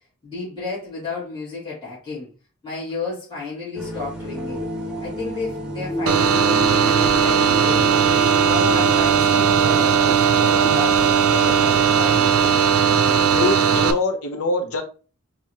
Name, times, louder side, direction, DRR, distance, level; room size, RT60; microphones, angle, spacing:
voice 1, 0.2-2.3 2.6-4.7 5.0-7.9 8.3-12.6, left 4 dB, 20° left, 2.4 m, -32 dB
sound 1, 3.7-11.6, left 1 dB, 5° right, 1.2 m, -31 dB
sound 2, 6.1-13.9, right 7 dB, 75° right, 0.5 m, -17 dB
voice 2, 13.1-14.8, left 3 dB, 80° left, 0.9 m, -24 dB
4.7 x 3.0 x 2.9 m
head